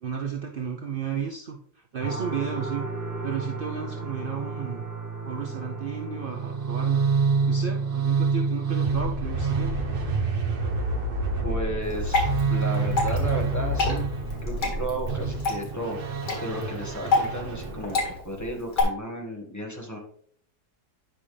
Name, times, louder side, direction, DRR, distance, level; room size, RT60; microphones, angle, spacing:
voice 1, 0.0-2.9 3.2-4.8 5.3-7.1 7.5-9.7, right 7 dB, 70° right, 2 dB, 0.5 m, -33 dB
sound 1, 2.0-16.8, right 4 dB, 10° right, 1.9 m, -38 dB
sound 2, 6.3-18.2, right 4 dB, 40° right, 1.0 m, -27 dB
voice 2, 11.4-14.1 14.4-16.0 16.4-20.0, right 1 dB, 10° left, -1 dB, 1.3 m, -34 dB
Water / Drip, 11.8-18.8, left 3 dB, 85° left, 2.5 m, -29 dB
9.4 x 5.6 x 3.3 m, 0.62 s
omnidirectional pair, 1.8 m